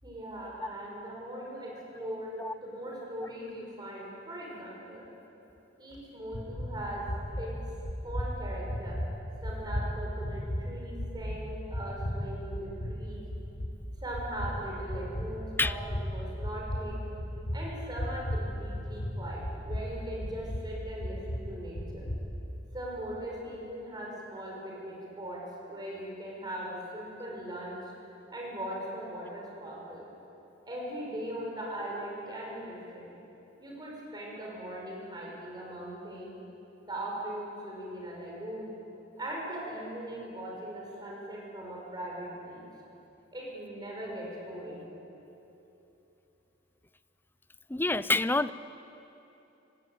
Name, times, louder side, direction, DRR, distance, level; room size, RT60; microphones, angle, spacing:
voice 1, 0.0-2.3 2.6-5.1 5.8-7.1 7.4-7.6 8.0-9.0 9.4-13.2 14.0-17.1 17.5-22.1 22.7-27.8 28.3-30.1 30.6-33.1 33.6-36.4 36.8-38.7 39.2-42.6 43.3-44.9, right 1 dB, 25° right, -3 dB, 5.7 m, -40 dB
sound 1, 6.3-6.7 7.1-7.5 7.8-8.3 8.7-9.1 9.4-9.9 10.2-10.6 11.0-11.4 11.7-12.1 12.5-12.9 13.3-13.7 14.1-14.5 14.9-15.3 15.6-16.0 16.4-16.8 17.2-17.6 18.0-18.5 18.7-19.2 19.4-19.8 20.2-20.6 21.0-21.4 21.7-22.2, equal, 60° left, 3.5 m, -33 dB
voice 2, 47.7-48.5, left 2 dB, 10° left, 14 dB, 0.5 m, -27 dB
24.5 x 18.5 x 9.1 m, 3.0 s
head